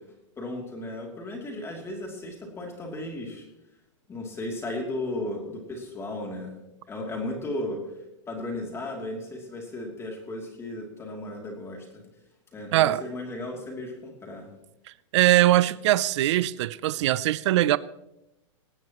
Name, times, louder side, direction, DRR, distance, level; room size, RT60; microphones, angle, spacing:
voice 1, 0.4-3.5 4.1-6.6 6.9-7.9 8.3-12.0 12.5-14.5, left 1 dB, 15° left, 2.8 m, -35 dB
voice 2, 12.7-13.0 15.1-17.8, right 14 dB, 60° right, 0.5 m, -21 dB
18.0 x 17.5 x 3.0 m
hypercardioid pair, 140°, 16 cm